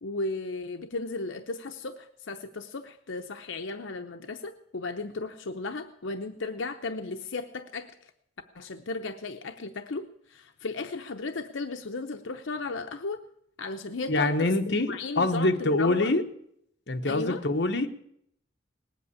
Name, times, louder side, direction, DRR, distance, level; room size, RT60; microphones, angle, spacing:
voice 1, 0.0-8.1 8.5-13.2 13.6-16.1 17.0-17.4, left 3 dB, 80° left, 6 dB, 0.8 m, -35 dB
voice 2, 14.1-16.2 16.9-17.9, left 2 dB, 60° left, 4 dB, 1.1 m, -25 dB
19.0 x 8.3 x 8.4 m, 0.72 s
head